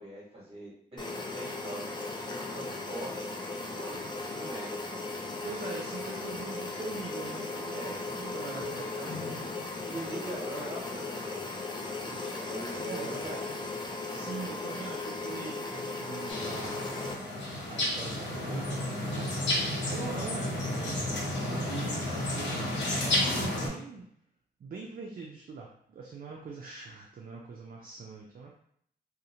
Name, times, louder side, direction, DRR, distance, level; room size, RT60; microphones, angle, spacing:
voice 1, 0.0-3.2 3.7-4.8 7.7-8.1 8.5-13.7, right 1 dB, 30° right, -5 dB, 1.2 m, -43 dB
sound 1, 1.0-17.1, left 3 dB, 25° left, 0.4 m, -37 dB
voice 2, 5.4-8.8 12.1-12.2 12.7-13.1 14.0-16.9 17.6-21.0 21.4-24.1 24.6-28.6, right 4 dB, 55° right, -1 dB, 0.4 m, -42 dB
sound 2, 16.3-23.7, left 1 dB, 90° left, 0.7 m, -31 dB
2.5 x 2.0 x 2.7 m, 0.68 s
wide cardioid pair, 100°, 18 cm